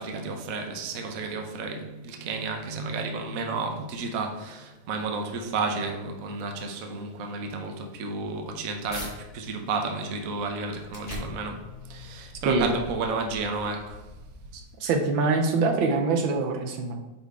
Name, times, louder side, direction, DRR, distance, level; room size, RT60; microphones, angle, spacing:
voice 1, 0.0-14.0, right 3 dB, 55° right, 1.1 m, -32 dB
sound 1, 8.1-9.1 9.7-14.9, equal, 20° left, 1.8 m, -44 dB
voice 2, 14.8-16.9, right 4 dB, 80° right, 1.5 m, -24 dB
9.0 x 4.4 x 3.6 m
omnidirectional pair, 2.2 m